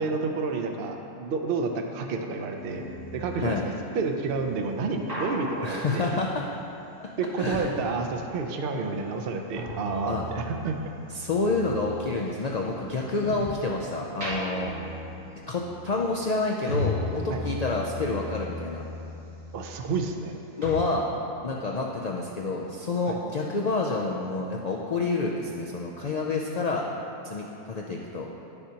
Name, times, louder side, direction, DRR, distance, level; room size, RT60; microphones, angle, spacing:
voice 1, 0.0-2.8 3.1-3.6 3.9-6.1 7.2-10.8 17.3-17.4 19.5-20.3 23.1-23.2, right 4 dB, 60° right, 4 dB, 0.7 m, -29 dB
sound 1, 2.6-8.5 8.8-13.7 14.1-20.3 20.6-20.7, left 1 dB, 85° right, 2.3 m, -37 dB
voice 2, 5.6-6.4 7.0-7.7 10.1-10.2 11.1-14.8 15.5-18.8 20.6-21.1 21.4-26.9 27.2-28.3, left 3 dB, 70° left, -1 dB, 0.3 m, -28 dB
9.6 x 6.7 x 2.8 m, 2.8 s
omnidirectional pair, 1.3 m